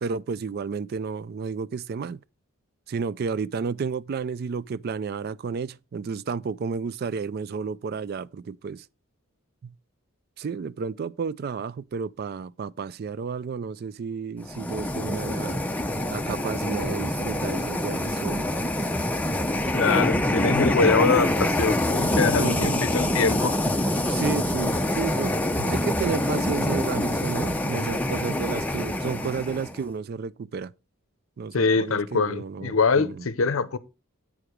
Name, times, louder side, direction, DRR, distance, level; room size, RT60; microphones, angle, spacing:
voice 1, 0.0-2.2 2.9-8.8 9.6-9.7 10.4-15.6 16.1-18.5 22.4-22.8 24.1-30.7 31.4-33.3, right 5 dB, 45° right, 0.3 m, -32 dB
sound 1, 14.4-29.8, left 1 dB, 5° left, 0.6 m, -25 dB
voice 2, 19.7-23.5 31.5-33.8, left 4 dB, 70° left, 0.6 m, -24 dB
8.7 x 4.8 x 5.0 m
head